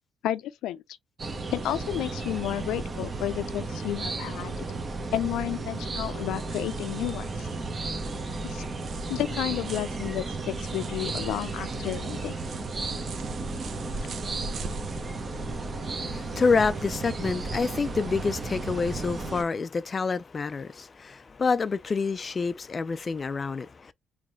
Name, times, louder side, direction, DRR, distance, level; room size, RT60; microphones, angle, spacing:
voice 1, 0.2-0.8 1.5-4.6 5.1-7.5 8.4-8.7 9.1-12.4, left 13 dB, 85° left, 0.5 m, -31 dB
sound 1, 1.2-19.4, right 3 dB, 35° right, 1.1 m, -34 dB
sound 2, 6.3-17.6, right 4 dB, 60° right, 0.9 m, -44 dB
voice 2, 15.9-23.9, left 4 dB, 35° left, 0.4 m, -28 dB
3.7 x 3.1 x 3.1 m
cardioid pair, 90°, 0 cm